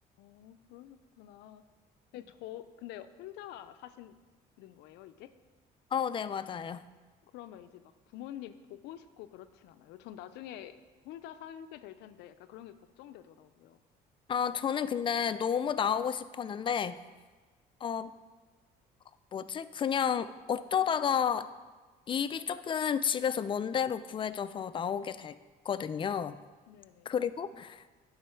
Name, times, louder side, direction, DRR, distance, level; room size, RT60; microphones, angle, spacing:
voice 1, 0.2-1.6 2.1-4.2 4.6-5.3 7.3-7.8 8.1-10.8 11.0-13.8 26.7-27.1, left 12 dB, 85° left, 11 dB, 0.5 m, -47 dB
voice 2, 5.9-6.8 14.3-17.0 17.8-18.1 19.3-21.5 22.1-25.3 25.7-26.4 27.1-27.8, left 8 dB, 30° left, 13 dB, 0.3 m, -31 dB
10.5 x 4.2 x 4.4 m, 1.3 s
cardioid pair, 110°, 17 cm